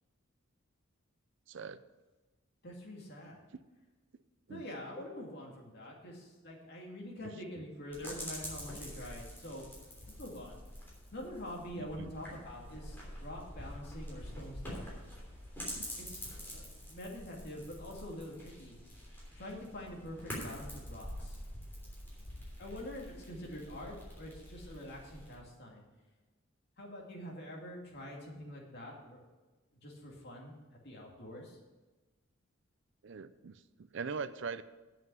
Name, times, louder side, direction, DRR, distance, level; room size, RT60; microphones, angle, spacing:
voice 1, 1.5-1.8 3.5-3.6 4.5-4.6 7.6-7.7 11.8-12.4 15.7-15.9 33.0-34.6, right 5 dB, 60° right, 13 dB, 0.5 m, -42 dB
voice 2, 2.6-3.4 4.5-9.7 10.1-10.6 11.1-15.1 16.0-18.8 19.4-21.4 22.6-25.8 26.8-29.2 29.7-31.6, left 1 dB, 50° left, -1 dB, 2.3 m, -46 dB
sound 1, 7.9-25.3, equal, 10° left, 3.2 m, -46 dB
8.0 x 7.5 x 8.0 m, 1.2 s
head